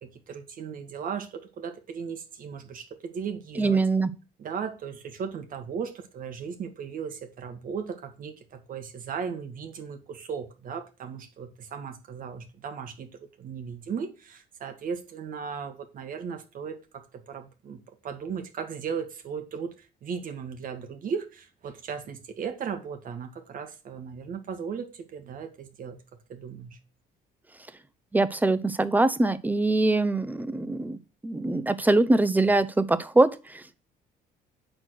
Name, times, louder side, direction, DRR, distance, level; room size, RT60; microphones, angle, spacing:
voice 1, 0.0-3.8 4.4-13.1 13.4-26.0 26.3-26.8, right 6 dB, 55° right, 1.8 m, -36 dB
voice 2, 3.6-4.1 28.1-33.8, right 2 dB, 10° right, 0.8 m, -23 dB
9.2 x 4.3 x 6.4 m
cardioid pair, 110°, 17 cm